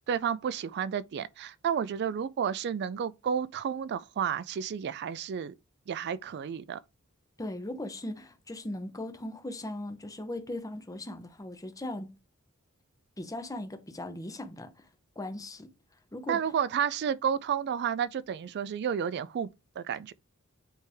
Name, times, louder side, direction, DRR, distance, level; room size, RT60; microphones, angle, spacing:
voice 1, 0.1-5.5 5.9-6.8 16.3-19.5 19.8-20.1, right 8 dB, 50° right, 0.3 m, -31 dB
voice 2, 7.4-12.1 13.2-14.7 15.2-15.7 16.1-16.4, left 1 dB, 15° left, 0.8 m, -38 dB
9.1 x 3.3 x 3.4 m
head